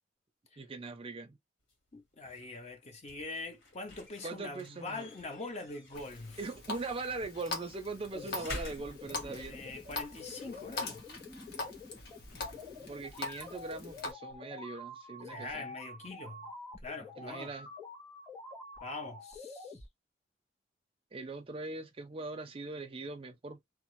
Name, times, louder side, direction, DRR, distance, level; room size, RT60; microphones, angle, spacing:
voice 1, 0.6-1.4 4.2-5.1 6.4-9.6 12.8-15.6 17.2-17.7 21.1-23.6, right 3 dB, 30° right, 0.4 m, -41 dB
sound 1, 1.6-14.4, left 2 dB, 80° left, 1.3 m, -52 dB
voice 2, 1.9-6.4 8.1-8.5 9.1-11.0 15.3-16.5 16.8-17.5 18.8-19.8, left 3 dB, 35° left, 0.6 m, -43 dB
Water tap faucet, 5.9-14.1, left 3 dB, 55° left, 1.0 m, -43 dB
sound 2, 8.1-19.9, left 2 dB, 20° left, 1.4 m, -48 dB
2.9 x 2.0 x 3.0 m
head